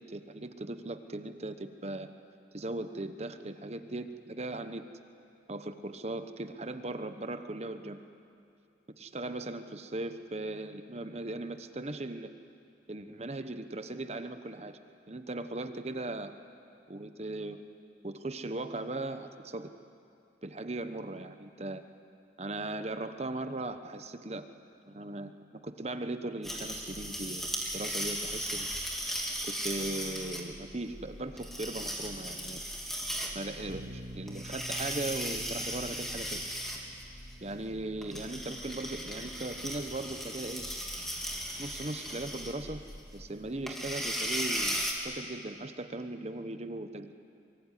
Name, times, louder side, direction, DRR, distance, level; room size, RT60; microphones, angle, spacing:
voice 1, 0.1-2.1 2.5-4.9 5.5-8.0 9.0-12.3 12.9-14.8 15.1-16.3 16.9-17.6 18.0-19.7 20.4-21.8 22.4-24.5 24.9-28.7 29.5-32.6 33.3-36.4 37.4-40.6 41.6-42.8 43.1-47.1, right 2 dB, 35° right, 9 dB, 1.0 m, -38 dB
sound 1, 26.4-44.9, equal, ahead, 2.8 m, -37 dB
Bass guitar, 33.7-39.9, equal, 85° right, 2.0 m, -49 dB
24.0 x 23.0 x 9.9 m, 2.5 s
head